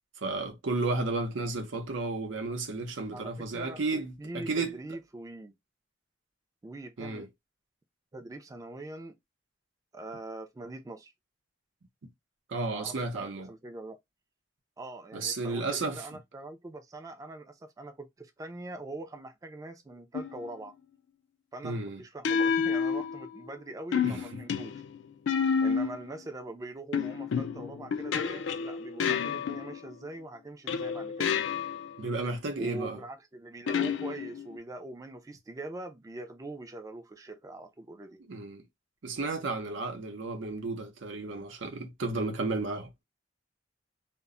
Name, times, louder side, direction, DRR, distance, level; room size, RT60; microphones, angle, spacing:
voice 1, 0.2-4.8 7.0-7.3 12.5-13.5 15.1-16.1 21.6-22.0 24.0-24.4 32.0-33.0 38.3-38.6 39.0-42.9, right 3 dB, 90° right, 0.6 m, -33 dB
voice 2, 3.1-5.6 6.6-7.3 8.1-9.1 9.9-11.1 12.7-14.0 14.8-20.7 21.5-24.8 25.6-31.3 32.6-38.2, right 2 dB, 20° right, 0.3 m, -43 dB
sound 1, 20.1-20.5 22.2-23.5 23.9-26.1 26.9-29.9 30.7-32.0 33.7-34.6, left 6 dB, 75° left, 0.4 m, -30 dB
2.1 x 2.0 x 3.6 m
head